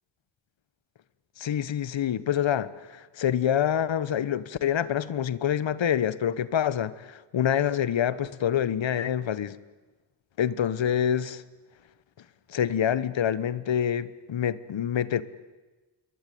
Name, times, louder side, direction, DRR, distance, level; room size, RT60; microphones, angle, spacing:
voice 1, 1.4-9.6 10.4-11.4 12.5-15.2, left 9 dB, 75° left, 1.2 m, -26 dB
27.5 x 22.5 x 9.3 m
wide cardioid pair, 180°, 45 cm